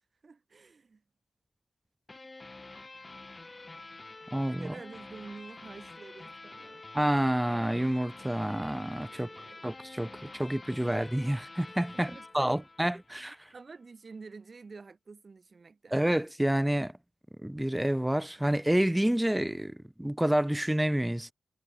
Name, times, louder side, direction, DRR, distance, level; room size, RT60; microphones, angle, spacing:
voice 1, 0.2-1.0 4.5-7.0 9.1-9.6 11.9-12.9 13.2-16.0, right 4 dB, 55° right, 1.2 m, -49 dB
sound 1, 2.1-13.4, left 3 dB, 35° left, 1.4 m, -48 dB
voice 2, 4.3-4.6 6.9-9.3 9.6-10.1 10.4-13.4 15.9-16.9 17.4-21.3, right 1 dB, 10° right, 0.5 m, -28 dB
cardioid pair, 50°, 0 cm